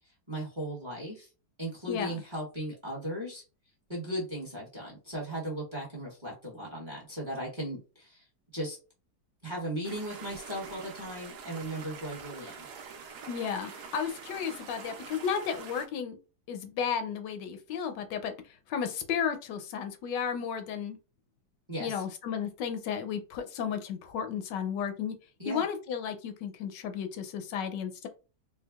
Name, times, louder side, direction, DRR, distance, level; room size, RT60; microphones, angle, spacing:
voice 1, 0.3-1.3 1.6-3.4 3.9-8.3 8.5-8.8 9.4-12.7 21.7-22.0 25.4-25.6, right 1 dB, 20° right, 0.9 m, -37 dB
voice 2, 1.9-2.2 13.3-16.2 16.5-18.3 18.7-21.0 21.8-25.2 25.5-28.1, left 7 dB, 80° left, 1.2 m, -33 dB
sound 1, 9.8-15.9, right 6 dB, 75° right, 1.2 m, -45 dB
4.4 x 2.2 x 2.3 m
omnidirectional pair, 1.9 m